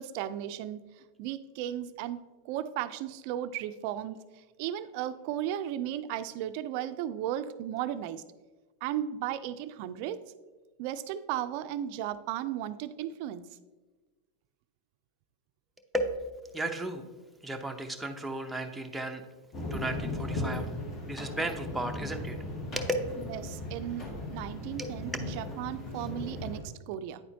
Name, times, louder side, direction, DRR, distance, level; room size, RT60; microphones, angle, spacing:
voice 1, 0.0-4.2 4.6-8.2 8.8-10.2 10.8-13.5 23.3-27.2, right 11 dB, 60° right, 12 dB, 0.4 m, -35 dB
voice 2, 16.5-17.0 17.4-19.2 19.7-20.7 21.1-22.4 22.7-23.2 24.8-24.9, right 1 dB, 5° right, 3 dB, 0.6 m, -34 dB
sound 1, 19.5-26.6, left 2 dB, 30° left, 1.4 m, -37 dB
9.3 x 4.2 x 2.7 m, 1.2 s
hypercardioid pair, 115°, 0 cm